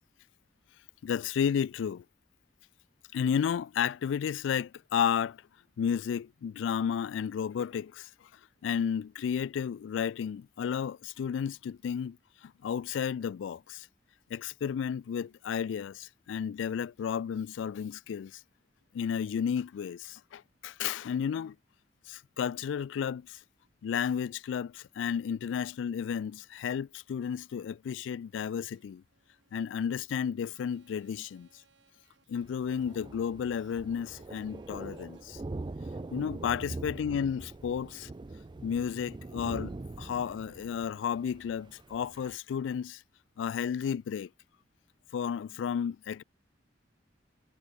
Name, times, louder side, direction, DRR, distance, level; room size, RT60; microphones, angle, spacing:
voice 1, 1.0-2.0 3.1-5.4 5.8-8.1 8.6-12.2 12.4-13.9 14.3-18.4 18.9-21.6 22.1-23.4 23.8-29.0 29.5-31.5 32.3-35.4 36.0-38.1 38.6-43.0 43.4-44.3 45.1-46.2, left 7 dB, 85° left, 0.3 m, -32 dB
sound 1, 28.5-35.2, right 5 dB, 80° right, 4.0 m, -70 dB
Thunder, 32.4-42.3, right 2 dB, 25° right, 0.4 m, -43 dB
head